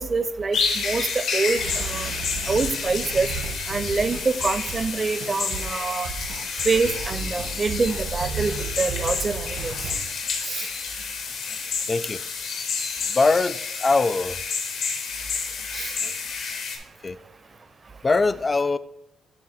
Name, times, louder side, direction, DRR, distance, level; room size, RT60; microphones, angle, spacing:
voice 1, 0.0-2.1 2.5-3.3 3.7-6.1 6.6-9.7 10.5-10.7 15.7-15.9, right 4 dB, 35° right, 13 dB, 0.5 m, -26 dB
sound 1, 0.5-16.8, left 5 dB, 75° left, 1.0 m, -30 dB
sound 2, 1.6-10.0, right 5 dB, 80° right, 1.2 m, -34 dB
voice 2, 11.9-12.2 13.1-14.4 16.0-16.1 17.0-17.2 18.0-18.8, left 3 dB, 30° left, 15 dB, 0.3 m, -22 dB
7.4 x 2.5 x 5.7 m, 0.84 s
cardioid pair, 90°, 0 cm